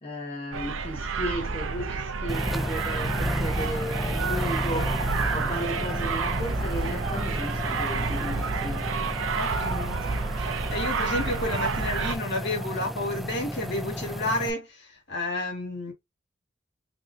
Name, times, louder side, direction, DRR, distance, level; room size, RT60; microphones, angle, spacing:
voice 1, 0.0-8.9, equal, 30° left, 1.1 m, -35 dB
sound 1, 0.5-12.2, right 4 dB, 80° right, 0.6 m, -29 dB
sound 2, 2.3-14.5, equal, ahead, 0.4 m, -33 dB
voice 2, 9.3-10.0 10.4-15.9, left 2 dB, 60° left, 2.1 m, -31 dB
4.2 x 3.1 x 2.7 m
head